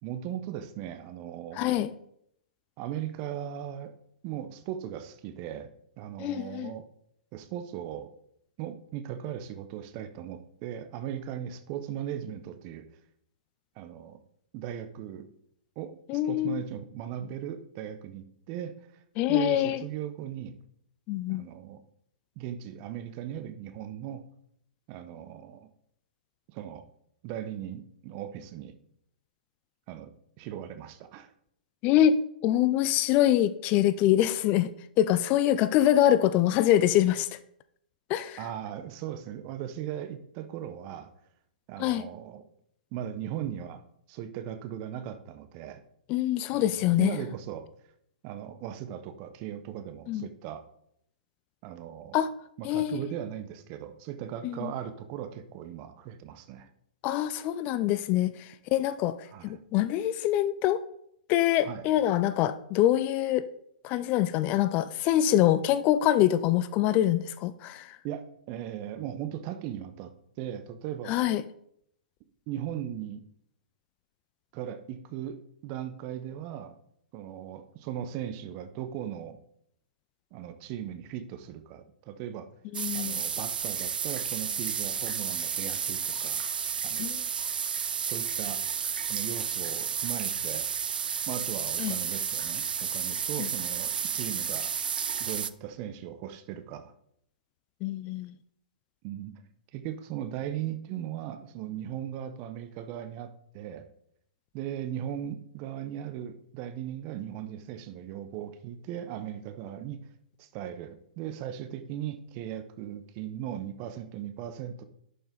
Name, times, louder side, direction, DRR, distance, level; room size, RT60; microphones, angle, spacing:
voice 1, 0.0-1.8 2.8-3.9 4.2-5.7 6.0-6.9 7.3-8.1 8.6-12.9 13.8-14.2 14.5-15.3 15.8-19.0 19.3-20.5 21.3-21.8 22.4-24.2 24.9-25.7 26.5-26.8 27.2-28.8 29.9-31.3 38.4-41.1 41.7-42.5 42.9-45.8 46.5-47.7 48.2-50.7 51.6-52.2 52.6-56.7 59.3-59.6 61.6-61.8 68.0-70.1 70.4-71.2 72.5-73.2 74.5-76.7 77.1-79.4 80.3-82.5 82.9-86.4 86.8-87.1 88.0-88.6 89.1-90.7 91.3-94.7 95.2-96.9 99.0-99.4 99.7-103.9 104.5-110.0 110.4-114.8, right 10 dB, 35° right, 10 dB, 0.9 m, -38 dB
voice 2, 1.6-1.9 6.2-6.7 16.1-16.6 19.2-19.8 21.1-21.4 31.8-34.7 35.0-37.3 38.1-38.4 41.8-42.0 46.1-47.1 50.1-50.3 52.1-52.3 52.6-53.0 54.4-54.7 57.0-59.2 59.4-60.8 61.3-63.5 63.8-68.0 71.1-71.4 82.7-83.2 87.0-87.2 91.8-92.0 93.4-93.5 97.8-98.3, left 12 dB, 30° left, 14 dB, 0.4 m, -25 dB
sound 1, 82.7-95.5, right 7 dB, 75° right, 0.5 m, -32 dB
11.0 x 5.3 x 3.9 m, 0.72 s
hypercardioid pair, 125°, 5 cm